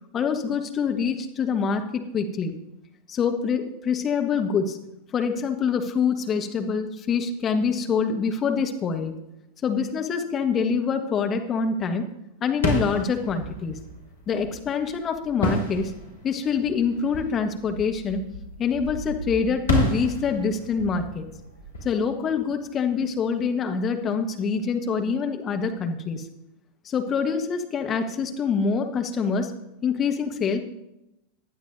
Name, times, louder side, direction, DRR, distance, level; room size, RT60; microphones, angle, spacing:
voice 1, 0.1-2.5 3.1-4.8 5.1-9.1 9.6-12.1 12.4-13.8 14.3-15.9 16.2-18.3 18.6-21.3 21.8-26.2 26.8-29.5 29.8-30.6, left 6 dB, 25° left, 5 dB, 1.4 m, -25 dB
sound 1, 12.5-23.1, equal, 70° left, 4.2 m, -31 dB
19.0 x 11.0 x 2.7 m, 0.89 s
figure-of-eight pair, 90°, 0 cm